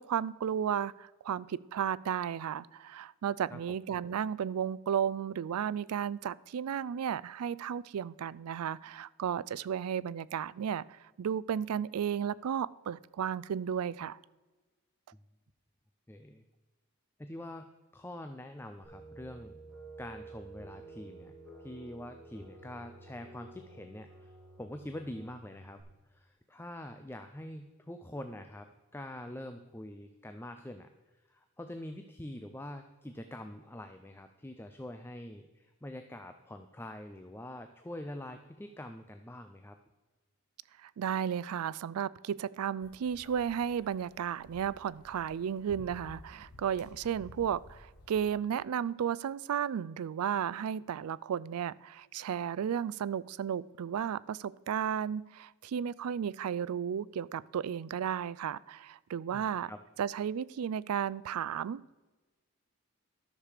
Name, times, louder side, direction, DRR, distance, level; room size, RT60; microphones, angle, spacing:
voice 1, 0.0-14.2 40.8-59.7 60.0-62.0, right 8 dB, 90° right, 21 dB, 0.4 m, -34 dB
voice 2, 16.1-16.4 17.2-19.6 20.0-21.3 21.6-24.3 24.6-25.8 26.1-30.9 31.3-39.8 59.3-59.8, left 1 dB, 10° left, 7 dB, 0.4 m, -45 dB
sound 1, 18.8-25.8, right 3 dB, 5° right, 3.3 m, -51 dB
sound 2, 42.8-48.3, left 1 dB, 85° left, 1.3 m, -54 dB
13.0 x 6.7 x 4.9 m, 1.2 s
head